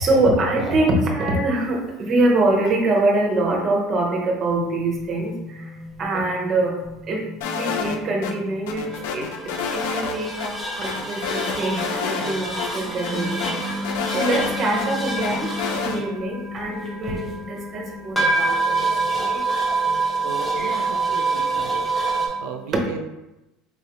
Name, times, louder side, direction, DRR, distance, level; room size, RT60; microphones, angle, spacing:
voice 1, 0.0-6.8 7.0-7.2 7.5-20.3 20.6-20.7 21.3-21.6 22.0-22.9, right 2 dB, 25° right, 0 dB, 0.8 m, -24 dB
sound 1, 4.5-22.3, right 3 dB, 5° left, 0.9 m, -28 dB
sound 2, 7.4-8.3 8.7-10.2 10.4-10.5 10.8-12.3 12.6-12.7 13.0-14.9 15.2-16.0, left 5 dB, 85° left, 0.5 m, -28 dB
voice 2, 20.2-21.9 22.4-23.1, right 6 dB, 90° right, 5 dB, 0.4 m, -35 dB
4.2 x 3.2 x 2.9 m, 0.96 s
cardioid pair, 170°, 0 cm